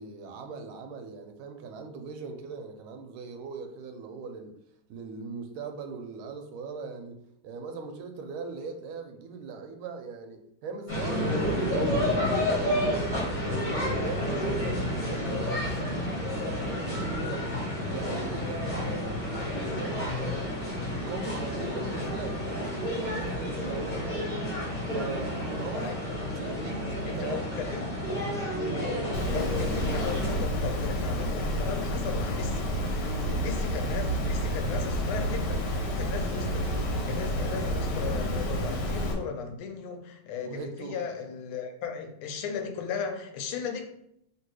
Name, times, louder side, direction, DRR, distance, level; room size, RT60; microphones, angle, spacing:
voice 1, 0.0-4.5 4.9-17.5 17.9-20.2 20.7-24.3 24.9-25.9 26.3-27.5 28.5-28.9 33.0-33.4 40.4-41.0, right 5 dB, 80° right, 5 dB, 1.4 m, -40 dB
sound 1, 10.9-30.4, left 1 dB, 30° left, 0.9 m, -30 dB
voice 2, 27.1-27.9 29.2-32.6 33.4-43.8, left 6 dB, 85° left, 6 dB, 1.5 m, -36 dB
Water, 29.1-39.1, equal, 65° left, 1.2 m, -29 dB
3.2 x 2.9 x 4.6 m, 0.75 s
omnidirectional pair, 2.4 m